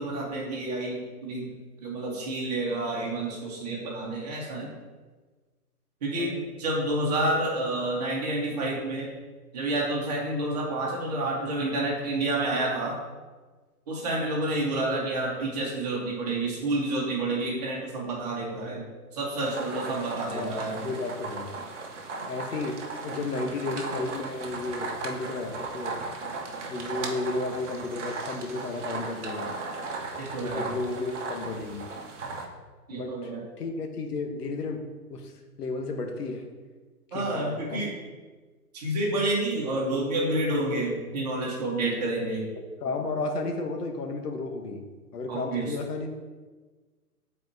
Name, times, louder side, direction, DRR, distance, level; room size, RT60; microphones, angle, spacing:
voice 1, 0.0-1.5 1.8-4.8 6.0-9.1 9.5-13.0 13.9-18.8 19.1-20.8 30.2-30.7 32.9-33.4 37.1-37.9 38.7-42.5 45.3-45.7, right 2 dB, 25° right, -4 dB, 1.2 m, -29 dB
sound 1, 19.4-32.5, right 3 dB, 50° right, 0.9 m, -36 dB
voice 2, 20.3-21.6 22.3-26.0 26.7-29.5 30.4-31.9 32.9-33.3 33.6-35.3 35.6-36.5 37.1-37.9 42.8-44.9 45.1-46.1, left 3 dB, 80° left, 4 dB, 1.1 m, -33 dB
8.6 x 4.4 x 2.7 m, 1.3 s
hypercardioid pair, 175°, 47 cm